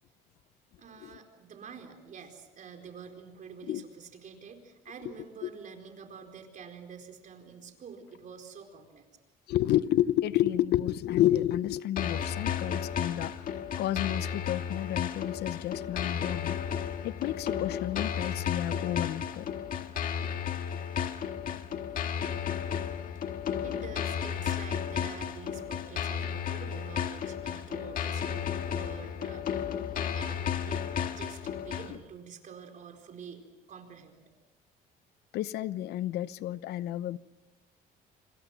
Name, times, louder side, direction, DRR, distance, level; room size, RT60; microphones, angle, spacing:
voice 1, 0.8-9.1 23.6-29.7 30.1-30.9 31.2-34.2, right 6 dB, 50° right, 4 dB, 4.5 m, -47 dB
voice 2, 9.5-13.3 13.8-16.6 17.0-19.5 31.9-32.0 35.3-37.2, left 13 dB, 75° left, 16 dB, 0.8 m, -30 dB
sound 1, 12.0-32.0, left 8 dB, 55° left, 1.8 m, -33 dB
26.5 x 25.5 x 6.1 m, 1.1 s
cardioid pair, 110°, 17 cm